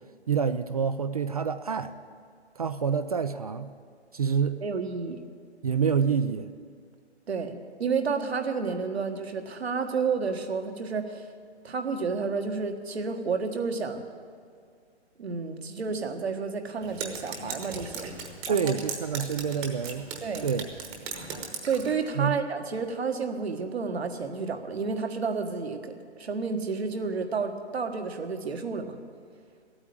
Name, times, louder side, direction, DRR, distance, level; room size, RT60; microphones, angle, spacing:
voice 1, 0.3-1.9 2.6-3.7 4.1-4.6 5.6-6.5 18.5-20.1 20.4-20.7 22.2-22.4, right 6 dB, 35° right, 11 dB, 0.4 m, -27 dB
voice 2, 4.6-5.2 7.3-11.3 11.6-14.0 15.2-18.1 18.5-18.7 20.2-20.5 21.6-28.9, right 5 dB, 65° right, 6 dB, 1.5 m, -31 dB
Drip, 16.8-22.0, right 5 dB, 15° right, 1.1 m, -38 dB
14.0 x 8.8 x 8.7 m, 2.1 s
figure-of-eight pair, 140°, 34 cm